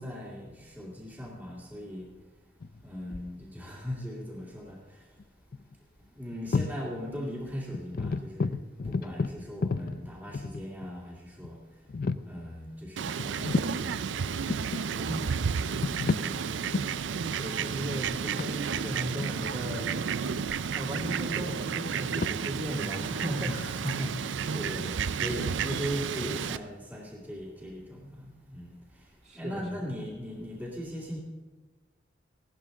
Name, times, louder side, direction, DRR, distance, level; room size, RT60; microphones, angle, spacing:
voice 1, 0.0-2.2 2.8-5.3 5.7-12.0 12.2-15.2 15.7-17.4 23.4-31.2, equal, 10° right, -3 dB, 2.1 m, -39 dB
sound 1, 2.6-3.4 5.2-5.3 5.5-5.7 6.3-6.9 7.2-7.3 7.7-10.9 11.4-11.5 11.9-12.3 13.2-13.8 14.3-14.8 15.6-16.3 16.7-17.0 17.5-20.6 20.9-22.3, left 4 dB, 50° left, 0.4 m, -32 dB
Fowl, 13.0-26.6, right 6 dB, 85° right, 0.4 m, -32 dB
voice 2, 16.1-16.7 17.4-19.9 20.7-23.5 29.2-29.6, right 1 dB, 40° right, -2 dB, 2.4 m, -36 dB
16.5 x 12.5 x 3.8 m, 1.4 s
head